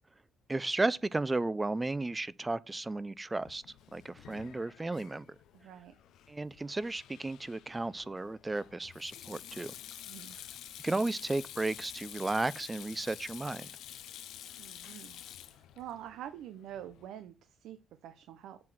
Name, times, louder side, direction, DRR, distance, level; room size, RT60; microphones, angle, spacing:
voice 1, 0.5-3.6 3.9-5.3 6.3-9.7 10.8-13.7, right 2 dB, 20° right, 0.4 m, -34 dB
Sink (filling or washing), 3.4-17.1, left 11 dB, 80° left, 0.6 m, -49 dB
voice 2, 5.5-5.9 10.1-10.4 14.6-17.8 18.0-18.6, right 11 dB, 85° right, 0.6 m, -46 dB
7.6 x 3.9 x 6.1 m
cardioid pair, 90°, 0 cm